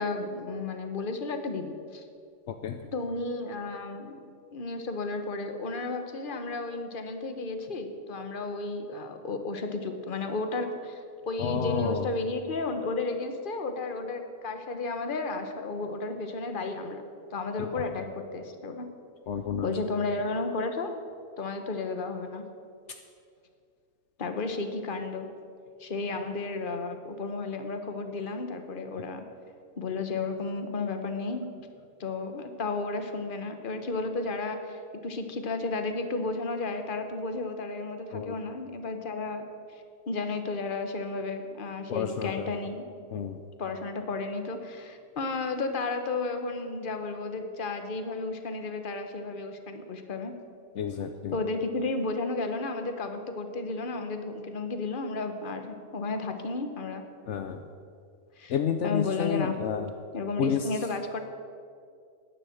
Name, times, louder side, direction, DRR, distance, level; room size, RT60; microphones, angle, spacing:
voice 1, 0.0-2.1 2.9-4.2 4.5-17.0 17.3-18.9 19.6-20.9 21.4-22.4 24.2-25.3 25.8-29.2 29.8-31.5 32.0-39.4 39.7-42.8 43.6-50.3 51.3-57.0 58.4-58.5 58.8-59.6 60.1-61.2, left 3 dB, 45° left, 7 dB, 1.2 m, -33 dB
voice 2, 2.5-2.8 11.4-12.1 17.6-18.0 19.3-19.7 38.1-38.4 41.9-42.5 43.1-43.4 50.8-51.4 57.3-57.7 58.5-59.9 60.4-60.7, left 8 dB, 70° left, 7 dB, 1.0 m, -30 dB
11.0 x 9.7 x 7.9 m, 2.3 s
omnidirectional pair, 1.3 m